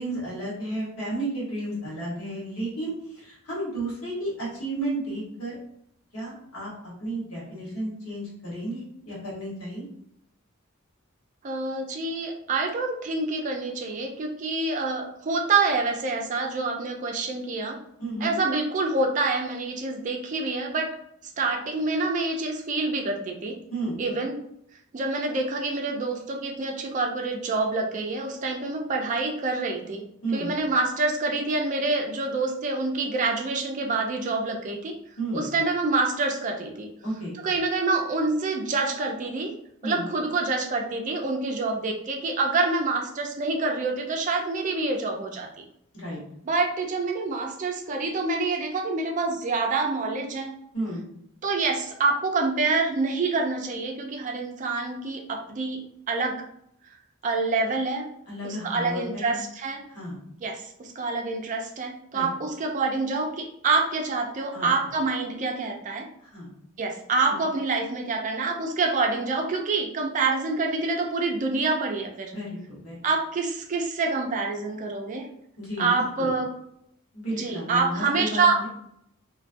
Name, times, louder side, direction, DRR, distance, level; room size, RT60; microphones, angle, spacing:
voice 1, 0.0-5.6 6.1-6.7 7.0-9.9 18.0-18.3 23.7-24.0 30.2-30.5 35.2-35.4 37.0-37.3 39.8-40.0 45.9-46.2 50.7-51.0 58.3-59.4 59.9-60.2 62.1-62.3 64.5-64.7 66.3-66.5 72.3-73.0 75.6-75.9 76.2-76.3 77.1-78.7, right 1 dB, 90° left, -6 dB, 1.2 m, -32 dB
voice 2, 11.4-17.8 18.2-20.9 21.4-23.6 24.0-24.3 24.9-30.0 30.3-34.9 35.3-36.9 37.4-39.5 39.8-45.5 46.4-50.5 51.4-55.8 56.1-56.4 57.2-58.1 58.4-59.8 60.4-66.0 66.8-72.3 73.0-75.3 75.8-76.5 77.3-78.7, right 3 dB, 35° right, 2 dB, 0.3 m, -27 dB
2.3 x 2.2 x 2.5 m, 0.73 s
head